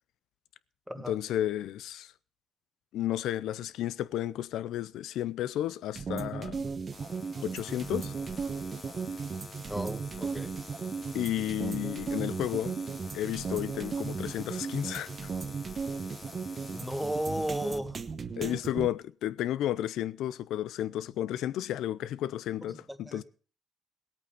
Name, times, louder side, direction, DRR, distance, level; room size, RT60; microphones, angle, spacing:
voice 1, 1.1-2.1 2.9-6.7 7.4-8.1 11.1-12.7 13.1-15.3 18.4-23.2, left 12 dB, 85° left, 0.5 m, -32 dB
sound 1, 6.0-18.9, right 5 dB, 40° right, 1.1 m, -36 dB
sound 2, 6.9-17.8, left 5 dB, 40° left, 1.0 m, -49 dB
voice 2, 9.7-10.5 16.7-18.0 22.6-23.2, right 1 dB, 5° right, 1.5 m, -35 dB
17.5 x 8.6 x 5.6 m
cardioid pair, 90°, 0 cm